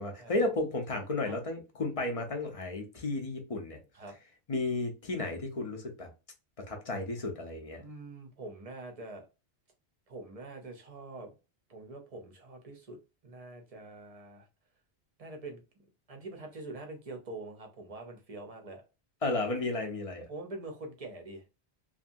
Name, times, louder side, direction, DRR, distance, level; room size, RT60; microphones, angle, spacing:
voice 1, 0.0-3.8 4.5-6.1 6.7-7.8 19.2-20.3, left 2 dB, 40° left, 0.6 m, -33 dB
voice 2, 7.8-9.2 10.1-11.3 11.7-13.0 13.2-14.5 15.2-15.6 16.1-18.8 20.3-21.4, right 2 dB, 40° right, 0.7 m, -44 dB
2.6 x 2.5 x 2.5 m
omnidirectional pair, 1.1 m